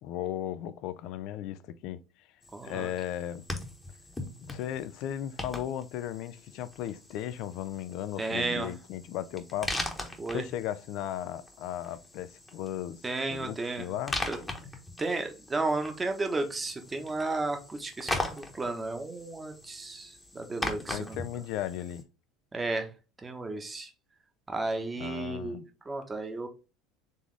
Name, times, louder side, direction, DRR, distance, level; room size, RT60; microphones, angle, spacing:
voice 1, 0.0-2.3 2.6-3.4 4.5-9.7 10.0-13.0 13.3-14.2 20.9-22.0 25.0-25.7, left 11 dB, 60° left, 0.4 m, -36 dB
sound 1, 2.4-22.0, left 2 dB, 10° left, 1.0 m, -40 dB
voice 2, 2.5-2.9 8.2-8.7 10.2-10.4 13.0-13.9 14.3-14.4 15.0-21.2 22.5-22.9 23.2-23.9 24.5-26.5, right 3 dB, 20° right, 1.0 m, -33 dB
4.0 x 3.4 x 3.2 m
hypercardioid pair, 70°, 0 cm